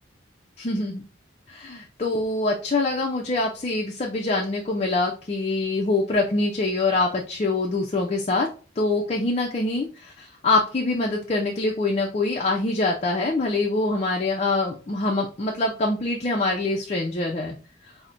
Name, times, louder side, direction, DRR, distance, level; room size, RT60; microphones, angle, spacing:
voice 1, 0.6-1.0 1.5-8.5 8.8-17.5, left 2 dB, 35° left, 0 dB, 0.5 m, -24 dB
5.8 x 2.1 x 2.5 m, 0.37 s
head